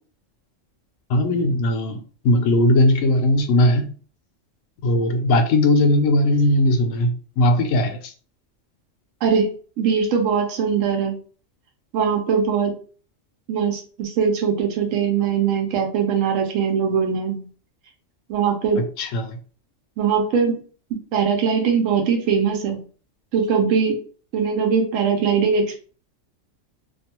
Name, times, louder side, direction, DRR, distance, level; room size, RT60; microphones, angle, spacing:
voice 1, 1.1-2.0 2.2-3.9 4.8-8.1 18.8-19.4, left 1 dB, 85° left, 1.0 m, -18 dB
voice 2, 9.8-11.2 11.9-12.8 13.5-17.5 18.3-18.8 20.0-20.6 21.1-22.8 23.3-24.0 24.3-25.8, right 6 dB, 85° right, 1.0 m, -21 dB
2.6 x 2.2 x 2.8 m
omnidirectional pair, 1.3 m